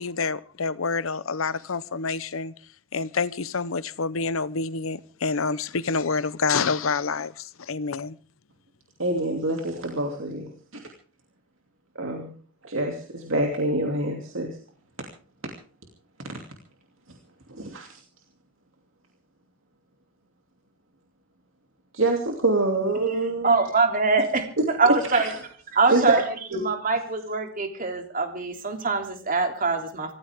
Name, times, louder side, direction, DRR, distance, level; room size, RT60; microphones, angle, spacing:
voice 1, 0.0-2.5 2.9-8.2, left 4 dB, 75° left, 0.8 m, -27 dB
voice 2, 9.0-10.5 11.9-12.3 12.6-14.6 16.2-16.3 17.5-18.0 21.9-23.6 24.6-25.3 25.9-26.2 26.5-26.6, right 2 dB, 70° right, 2.7 m, -26 dB
voice 3, 23.4-24.5 24.8-25.3 25.7-30.1, right 3 dB, 45° right, 3.2 m, -24 dB
25.5 x 15.0 x 3.6 m
head